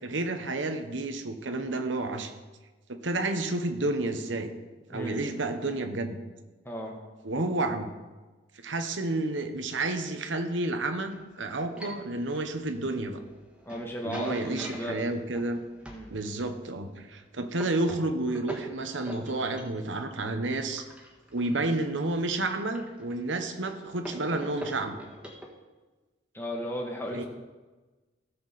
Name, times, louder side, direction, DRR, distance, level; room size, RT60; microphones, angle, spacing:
voice 1, 0.0-2.3 2.9-4.5 4.9-6.2 7.2-7.9 8.6-13.2 14.0-15.6 16.1-20.8 21.3-25.0 27.1-27.3, right 2 dB, 85° right, 7 dB, 1.1 m, -30 dB
voice 2, 4.9-5.2 6.6-6.9 13.6-15.1 15.9-16.1 21.5-21.6 26.3-27.3, equal, 10° left, 0 dB, 1.6 m, -35 dB
sound 1, 11.1-16.4 17.0-25.5, equal, 5° right, 1.5 m, -46 dB
17.0 x 7.0 x 4.2 m, 1.3 s
head